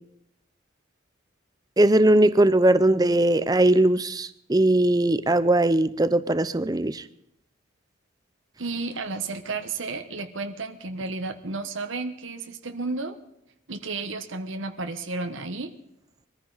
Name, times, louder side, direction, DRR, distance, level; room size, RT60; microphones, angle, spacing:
voice 1, 1.8-7.0, right 1 dB, 20° right, 0.6 m, -20 dB
voice 2, 8.6-13.2 13.7-15.7, right 3 dB, 75° right, 1.2 m, -32 dB
22.5 x 14.5 x 4.0 m
head